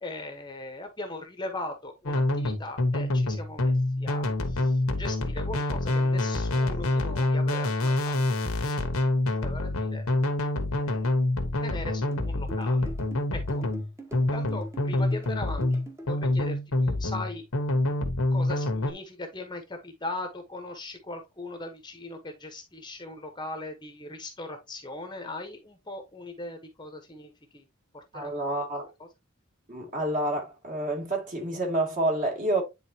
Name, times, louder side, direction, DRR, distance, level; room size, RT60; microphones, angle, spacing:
voice 1, 0.0-8.5 8.8-8.9 9.4-10.1 10.8-11.1 11.6-12.9 13.3-13.6 14.3-15.8 16.1-17.4 18.3-27.6 27.9-28.5, left 2 dB, 20° left, 1.0 m, -39 dB
sound 1, 2.1-18.9, left 2 dB, 85° left, 1.2 m, -26 dB
sound 2, 12.1-16.1, right 1 dB, 15° right, 1.3 m, -43 dB
voice 2, 28.1-28.9 29.7-32.6, right 1 dB, 40° right, 2.3 m, -28 dB
9.6 x 3.8 x 2.8 m
head